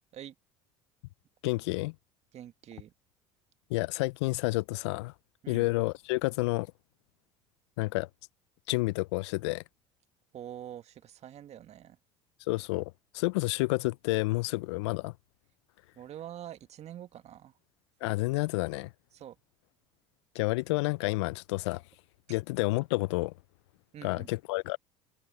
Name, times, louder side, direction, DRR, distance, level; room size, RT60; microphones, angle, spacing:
voice 1, 1.4-1.9 3.7-5.1 5.5-6.7 7.8-8.1 8.7-9.6 12.5-15.1 18.0-18.9 20.3-21.8 22.3-23.3 24.0-24.8, left 22 dB, 75° left, 0.4 m, -30 dB
voice 2, 2.3-2.9 5.4-5.7 10.3-12.0 16.0-17.5 19.1-19.4 22.3-22.4 23.9-24.3, right 11 dB, 50° right, 1.8 m, -45 dB
hypercardioid pair, 70°, 15 cm